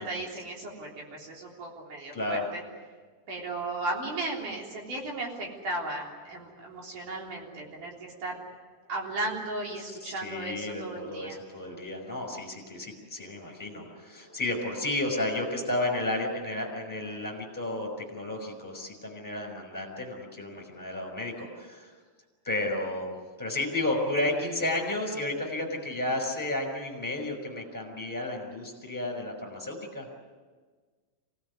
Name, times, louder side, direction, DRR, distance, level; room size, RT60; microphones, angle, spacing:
voice 1, 0.0-2.6 3.3-8.4 8.9-11.4, right 2 dB, 50° right, -1 dB, 4.7 m, -35 dB
voice 2, 2.1-2.4 9.9-21.9 22.4-30.2, left 2 dB, 5° left, 3 dB, 5.2 m, -32 dB
25.0 x 18.5 x 9.7 m, 1.5 s
omnidirectional pair, 4.9 m